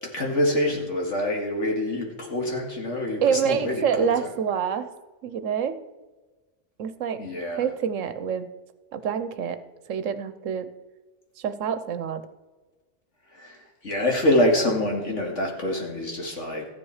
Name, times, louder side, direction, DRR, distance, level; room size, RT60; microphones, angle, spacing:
voice 1, 0.0-4.3 7.2-7.6 13.3-16.7, left 1 dB, 70° left, 0 dB, 2.6 m, -26 dB
voice 2, 3.2-4.9 5.2-5.7 6.8-7.2 7.6-8.5 8.9-9.6 9.9-10.7 11.4-12.2, right 7 dB, 80° right, 12 dB, 1.2 m, -26 dB
14.0 x 10.0 x 4.9 m, 1.2 s
omnidirectional pair, 1.3 m